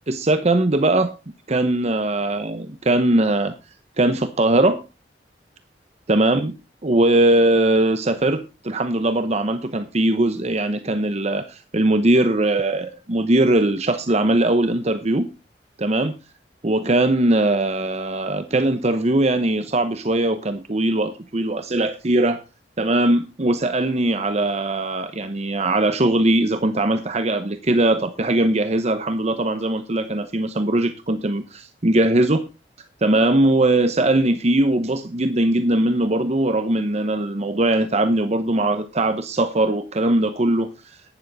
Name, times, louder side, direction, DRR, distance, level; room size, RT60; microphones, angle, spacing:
voice 1, 0.1-1.1 1.5-3.5 4.0-4.8 6.1-6.6 6.8-15.3 15.8-16.2 16.6-22.4 22.8-32.4 33.0-41.0, right 1 dB, 40° right, 0.9 m, -20 dB
11.5 x 10.5 x 4.1 m
head